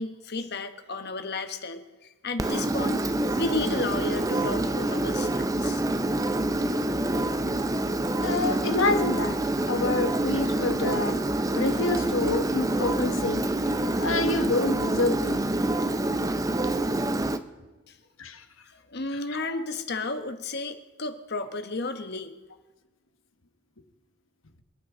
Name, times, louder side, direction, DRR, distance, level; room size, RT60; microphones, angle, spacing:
voice 1, 0.0-1.8 2.2-3.0 3.3-5.8 18.9-22.3, left 2 dB, 55° left, 1.2 m, -32 dB
Engine, 2.4-17.4, right 1 dB, 15° right, 0.6 m, -26 dB
voice 2, 8.2-9.4 9.7-11.2 11.5-13.5 14.0-15.4 18.2-18.4 19.1-19.6, left 3 dB, 75° left, 1.2 m, -28 dB
27.0 x 9.6 x 3.8 m
head